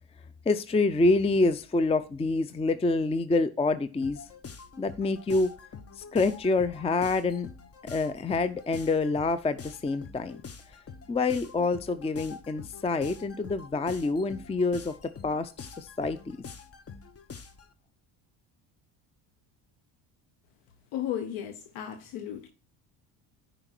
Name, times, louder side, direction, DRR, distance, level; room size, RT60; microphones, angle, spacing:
voice 1, 0.5-4.2 4.8-5.5 6.0-7.5 7.8-10.4 11.1-14.9 15.2-16.4, left 3 dB, 15° left, 0.5 m, -27 dB
sound 1, 4.0-17.7, left 5 dB, 30° left, 1.0 m, -46 dB
voice 2, 20.9-22.5, left 10 dB, 75° left, 1.1 m, -34 dB
9.7 x 5.2 x 4.4 m
supercardioid pair, 75°, 50 cm